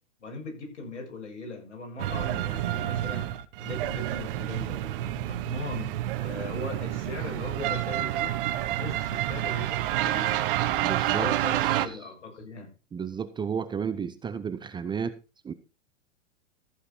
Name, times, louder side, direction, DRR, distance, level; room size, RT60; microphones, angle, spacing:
voice 1, 0.2-3.3 3.6-8.3 8.8-10.4 11.1-12.7, left 2 dB, 75° left, 2 dB, 7.1 m, -39 dB
sound 1, 2.0-11.9, right 14 dB, 50° right, 1.2 m, -29 dB
voice 2, 10.8-11.3 11.6-12.1 12.9-15.2 15.4-15.5, right 7 dB, 15° right, 13 dB, 0.7 m, -32 dB
14.5 x 7.9 x 4.4 m, 0.31 s
hypercardioid pair, 120°, 36 cm